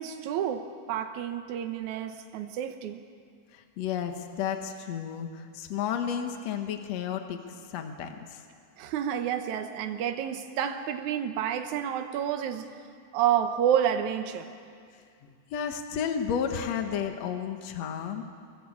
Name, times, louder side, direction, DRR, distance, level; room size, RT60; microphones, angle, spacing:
voice 1, 0.0-3.0 8.8-12.7 13.1-14.5, right 9 dB, 80° right, 6 dB, 2.4 m, -29 dB
voice 2, 3.5-7.4 7.7-8.4 15.5-18.2, left 8 dB, 65° left, 5 dB, 2.5 m, -32 dB
24.0 x 22.0 x 8.5 m, 2.2 s
omnidirectional pair, 3.4 m